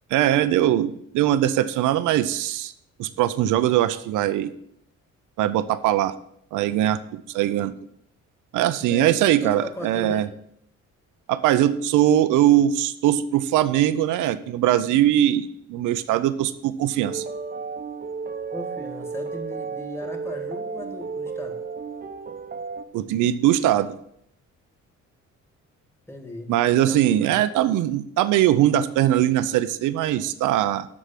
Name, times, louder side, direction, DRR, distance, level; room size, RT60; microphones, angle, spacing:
voice 1, 0.1-2.7 3.0-4.5 5.4-6.1 6.5-7.7 8.5-10.3 11.3-17.2 22.9-24.0 26.5-30.9, right 12 dB, 90° right, 13 dB, 0.6 m, -21 dB
voice 2, 8.9-10.3 18.5-21.6 26.1-26.5 26.8-27.4, left 1 dB, 10° left, 2 dB, 2.0 m, -37 dB
sound 1, 17.0-22.8, right 5 dB, 30° right, 0.8 m, -33 dB
8.2 x 6.3 x 5.8 m, 0.71 s
cardioid pair, 90°, 30 cm